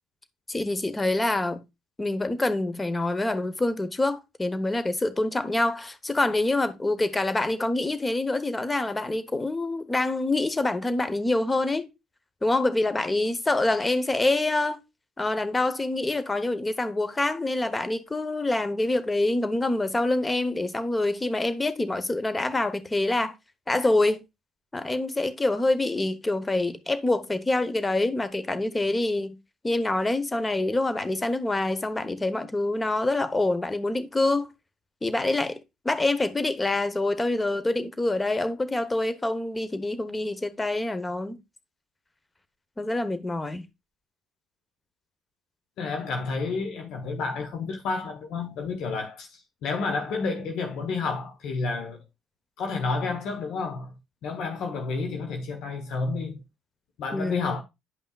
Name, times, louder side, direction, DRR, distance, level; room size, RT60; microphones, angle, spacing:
voice 1, 0.5-1.6 2.0-11.9 12.4-14.8 15.2-23.3 23.7-24.2 24.7-29.4 29.6-34.5 35.0-35.6 35.8-41.4 42.8-43.7 57.1-57.5, left 2 dB, 20° left, 1.1 m, -26 dB
voice 2, 45.8-52.0 52.6-53.9 54.2-56.4 57.0-57.6, left 4 dB, 65° left, 1.2 m, -30 dB
10.0 x 5.4 x 2.4 m
hypercardioid pair, 55°, 0 cm